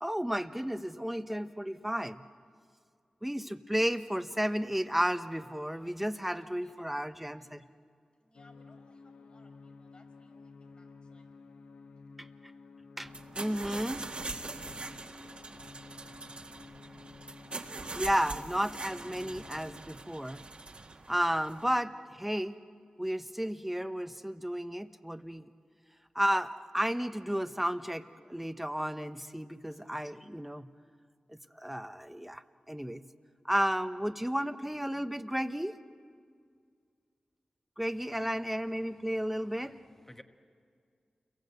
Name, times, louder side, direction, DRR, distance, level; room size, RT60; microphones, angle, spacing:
voice 1, 0.0-2.2 3.2-7.7 12.2-12.3 13.0-13.1 13.4-14.0 18.0-20.4 21.1-22.6 23.0-25.5 26.1-30.7 31.3-33.0 33.4-35.7 37.8-39.8, equal, 5° right, 1.2 m, -33 dB
voice 2, 5.7-7.1 7.4-7.5 8.2-11.2 13.5-16.5 29.7-29.8, left 2 dB, 45° left, 5.7 m, -64 dB
sound 1, 8.3-19.8, left 4 dB, 80° left, 0.9 m, -53 dB
sound 2, 13.0-21.7, right 3 dB, 55° right, 2.0 m, -43 dB
voice 3, 38.8-40.2, left 1 dB, 15° left, 1.6 m, -57 dB
29.5 x 22.5 x 8.2 m
cardioid pair, 40°, 2 cm